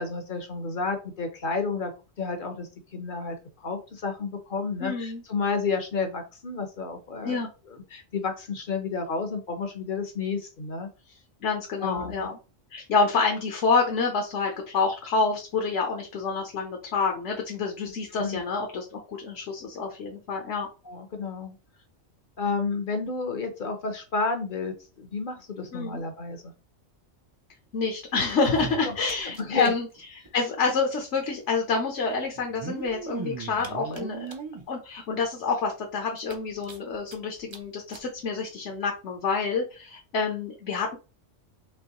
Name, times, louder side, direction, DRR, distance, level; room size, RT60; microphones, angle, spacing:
voice 1, 0.0-1.9 2.2-10.9 11.8-12.3 18.2-18.4 20.8-21.6 22.4-26.5 28.8-28.9 29.2-29.7, left 4 dB, 50° left, 6 dB, 0.8 m, -31 dB
voice 2, 4.8-5.2 7.2-7.5 11.4-12.4 12.7-20.7 25.7-26.0 27.7-29.9 30.3-34.3 34.7-41.0, left 4 dB, 65° left, 2 dB, 1.1 m, -27 dB
sound 1, 28.3-29.7 30.0-30.1 30.3-30.4 31.4-31.5 32.4-34.7 35.2-35.3 35.7-35.8 36.2-37.2 37.5-37.6 37.9-38.1 38.8-38.9, right 4 dB, 40° right, 0.4 m, -38 dB
5.4 x 3.0 x 2.9 m, 0.33 s
omnidirectional pair, 1.3 m